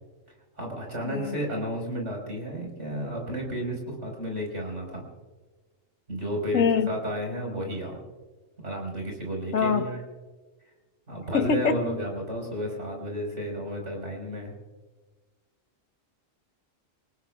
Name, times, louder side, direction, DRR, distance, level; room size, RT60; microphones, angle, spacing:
voice 1, 0.5-5.0 6.1-8.0 8.6-10.0 11.1-14.5, equal, 60° right, 1 dB, 5.2 m, -32 dB
voice 2, 1.1-1.4 6.5-6.9 9.5-9.9 11.3-11.8, left 6 dB, 80° left, 7 dB, 1.5 m, -23 dB
25.0 x 19.5 x 2.4 m, 1.3 s
omnidirectional pair, 1.3 m